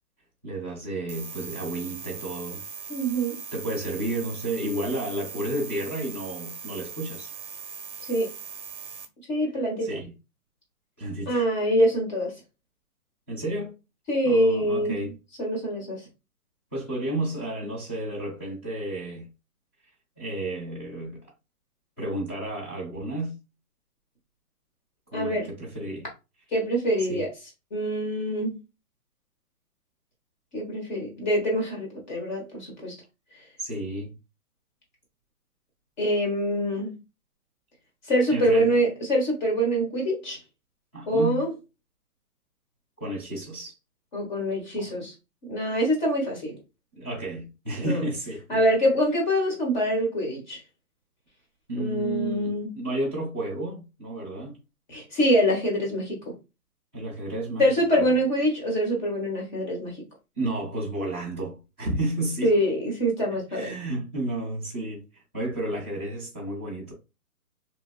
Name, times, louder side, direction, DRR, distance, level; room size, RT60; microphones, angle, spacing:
voice 1, 0.4-2.6 3.5-7.3 9.8-10.1 11.0-11.5 13.3-13.7 14.2-15.1 16.7-19.3 20.2-21.3 22.0-23.4 25.1-26.1 27.1-27.2 33.6-34.1 38.3-38.7 40.9-41.4 43.0-43.8 44.8-44.9 47.0-48.6 51.7-54.6 56.9-57.6 58.0-58.2 60.4-62.5 63.5-66.9, right 1 dB, 10° left, 0.6 m, -32 dB
sound 1, 1.1-9.1, right 6 dB, 50° right, 0.6 m, -40 dB
voice 2, 2.9-3.4 8.1-8.3 9.3-9.9 11.3-12.3 14.1-15.0 15.4-16.0 25.1-25.5 26.5-27.3 27.7-28.5 30.5-32.9 36.0-36.9 38.1-40.4 41.1-41.5 44.1-45.1 45.5-46.5 47.8-48.0 48.5-50.6 51.8-52.7 54.9-56.3 57.6-59.9 62.4-63.8, equal, 30° left, 1.2 m, -25 dB
2.8 x 2.6 x 2.2 m
hypercardioid pair, 160°, 46 cm